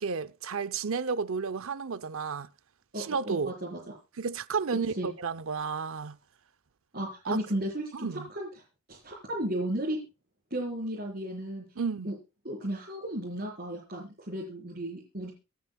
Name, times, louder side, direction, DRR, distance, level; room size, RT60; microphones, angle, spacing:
voice 1, 0.0-2.5 3.0-3.5 4.2-6.2 7.3-7.4 7.9-8.3 11.8-12.1, right 5 dB, 65° right, 0.6 m, -32 dB
voice 2, 2.9-3.9 5.0-5.1 6.9-8.5 8.9-10.0 10.5-11.6 12.0-12.1 12.4-15.3, right 1 dB, 45° right, 4.4 m, -34 dB
26.0 x 9.4 x 2.3 m
head